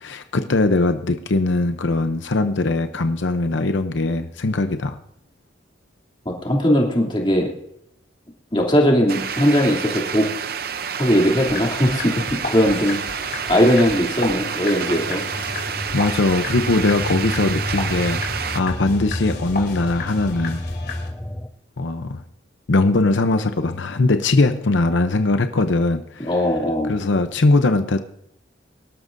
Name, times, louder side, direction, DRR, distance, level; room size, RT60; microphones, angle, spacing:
voice 1, 0.0-5.0 15.9-20.6 21.8-22.2 22.7-26.3 26.9-28.0, left 2 dB, 80° left, 8 dB, 0.7 m, -20 dB
voice 2, 6.4-7.5 8.5-10.3 11.0-12.2 12.5-15.2 26.2-26.9, equal, 25° left, 0 dB, 2.8 m, -19 dB
sound 1, 9.1-18.6, right 7 dB, 55° right, 0.6 m, -29 dB
sound 2, 11.4-21.1, left 3 dB, 60° left, 3.1 m, -34 dB
sound 3, 14.9-21.5, equal, 5° left, 0.6 m, -30 dB
24.5 x 12.5 x 2.7 m, 0.80 s
head